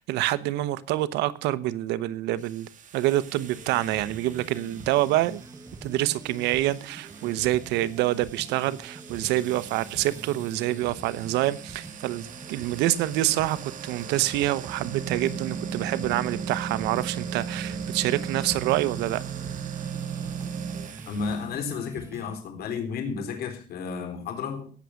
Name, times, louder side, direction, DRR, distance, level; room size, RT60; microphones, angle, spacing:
voice 1, 0.0-2.7 2.9-5.4 5.8-13.6 13.8-19.2, right 15 dB, 90° right, 0.9 m, -26 dB
sound 1, 2.3-21.5, right 7 dB, 50° right, 1.6 m, -38 dB
sound 2, 3.5-22.4, right 3 dB, 15° right, 1.4 m, -45 dB
voice 2, 21.1-24.7, left 5 dB, 65° left, 3.9 m, -32 dB
17.5 x 7.2 x 6.4 m
cardioid pair, 110°, 17 cm